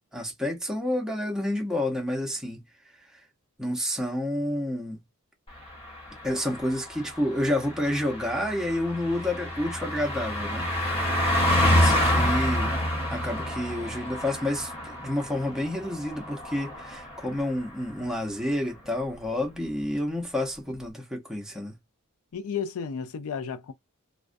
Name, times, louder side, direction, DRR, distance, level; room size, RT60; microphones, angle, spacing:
voice 1, 0.1-2.6 3.6-5.0 6.2-10.7 11.6-12.8 13.1-21.8, left 1 dB, 5° right, 0.6 m, -29 dB
Car passing by, 5.6-17.5 17.8-18.0, left 1 dB, 25° left, 1.0 m, -28 dB
voice 2, 11.6-12.0 22.3-23.7, left 6 dB, 90° left, 0.4 m, -33 dB
2.3 x 2.1 x 2.5 m
head